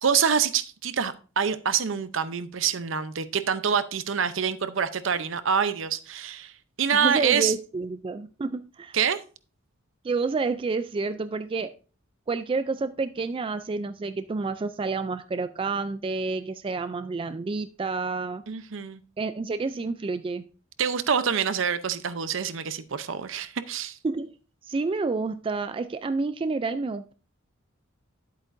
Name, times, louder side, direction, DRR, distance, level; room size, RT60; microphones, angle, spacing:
voice 1, 0.0-6.5 6.8-7.5 8.9-9.2 18.5-19.0 20.8-24.0, right 7 dB, 65° right, 0.6 m, -26 dB
voice 2, 7.0-9.0 10.0-11.7 12.3-18.4 19.2-20.4 24.0-24.3 24.6-27.1, right 3 dB, 25° right, 0.3 m, -29 dB
10.5 x 8.1 x 2.6 m
head